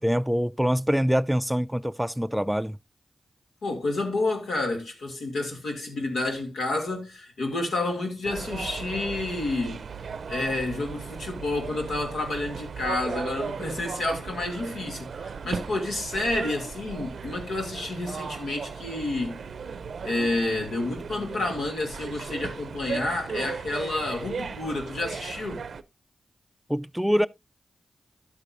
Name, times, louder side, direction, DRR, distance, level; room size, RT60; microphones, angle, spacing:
voice 1, 0.0-2.8 26.7-27.3, equal, 5° right, 0.4 m, -24 dB
voice 2, 3.6-9.8 10.3-19.4 20.0-25.7, left 2 dB, 85° left, 2.4 m, -29 dB
sound 1, 8.2-25.8, right 5 dB, 75° right, 0.5 m, -37 dB
11.5 x 8.1 x 2.5 m
cardioid pair, 40°, 0 cm